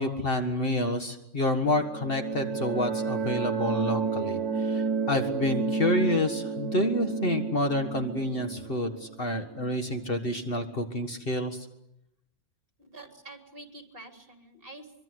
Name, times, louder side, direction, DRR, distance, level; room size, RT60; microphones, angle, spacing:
voice 1, 0.0-11.7, left 1 dB, 50° left, 5 dB, 1.9 m, -28 dB
sound 1, 1.6-10.2, right 5 dB, 80° right, 1.5 m, -31 dB
voice 2, 12.8-15.0, right 2 dB, 50° right, 3 dB, 3.8 m, -47 dB
24.5 x 24.0 x 8.0 m, 0.83 s
omnidirectional pair, 1.2 m